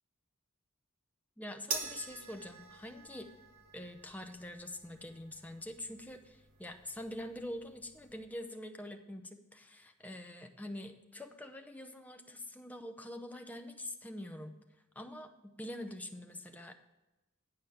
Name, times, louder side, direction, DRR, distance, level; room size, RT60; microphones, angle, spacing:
voice 1, 1.4-3.3 3.7-14.6 15.0-16.7, left 1 dB, 5° left, 5 dB, 0.6 m, -45 dB
sound 1, 1.7-8.3, right 4 dB, 70° right, 1.2 m, -46 dB
9.2 x 5.1 x 7.1 m, 0.99 s
head